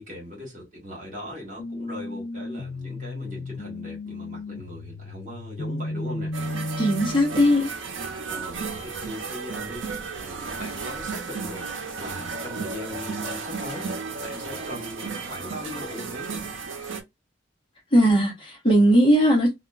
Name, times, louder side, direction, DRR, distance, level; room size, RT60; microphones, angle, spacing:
voice 1, 0.0-6.4 7.1-7.2 8.3-9.8 10.2-11.7 12.0-13.9 14.2-16.5, left 1 dB, 40° right, 1.6 m, -39 dB
sound 1, 1.6-7.5, left 2 dB, 60° left, 0.4 m, -34 dB
sound 2, 6.3-17.0, right 4 dB, 85° right, 0.6 m, -34 dB
voice 2, 6.8-7.7 17.9-19.5, equal, 25° left, 1.0 m, -18 dB
2.8 x 2.4 x 2.3 m
head